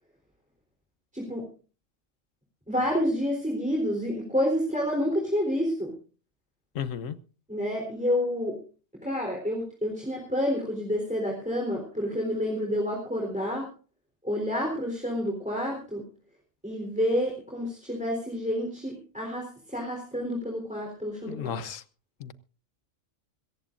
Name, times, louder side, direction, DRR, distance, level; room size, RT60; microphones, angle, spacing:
voice 1, 1.1-1.5 2.7-5.9 7.5-8.6 9.0-13.7 14.2-16.0 16.6-21.6, equal, 5° right, 3.8 m, -29 dB
voice 2, 6.7-7.2 21.2-21.8 22.2-22.3, left 8 dB, 75° left, 1.3 m, -34 dB
25.5 x 14.5 x 2.6 m
omnidirectional pair, 1.3 m